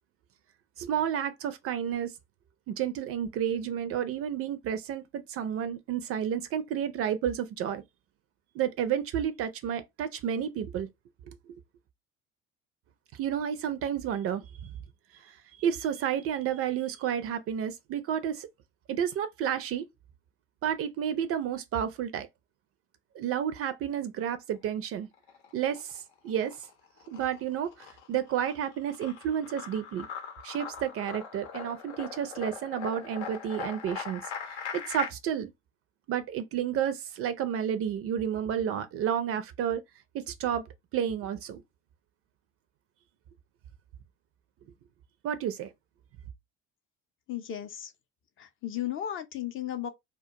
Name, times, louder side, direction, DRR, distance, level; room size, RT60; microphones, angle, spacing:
voice 1, 0.8-2.1 2.7-7.8 8.5-10.9 11.2-11.6 13.1-14.7 15.2-18.5 18.9-19.8 20.6-22.3 23.1-25.1 25.5-26.7 27.1-30.1 30.4-35.5 36.1-39.8 40.1-40.6 40.9-41.6 45.2-45.7, right 9 dB, 40° right, 0.4 m, -31 dB
sound 1, 25.1-26.0 26.3-35.1, left 6 dB, 75° left, 0.7 m, -41 dB
voice 2, 47.3-47.9 48.4-49.9, left 11 dB, 35° left, 0.5 m, -35 dB
2.2 x 2.2 x 2.7 m
hypercardioid pair, 65°, 36 cm